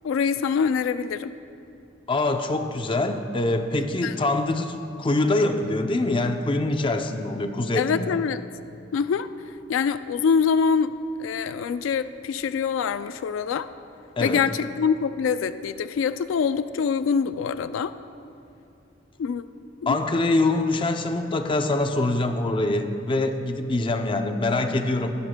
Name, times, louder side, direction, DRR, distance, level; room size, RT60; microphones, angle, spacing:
voice 1, 0.0-1.3 4.0-4.2 7.7-8.4 8.9-9.3 9.7-10.9 11.2-13.7 14.2-17.9 19.2-19.4 19.8-20.0, left 6 dB, 85° left, 12 dB, 0.3 m, -24 dB
voice 2, 2.1-8.2 14.2-14.4 19.9-25.1, left 2 dB, 25° left, 7 dB, 0.5 m, -24 dB
20.5 x 11.0 x 2.2 m, 2.7 s
head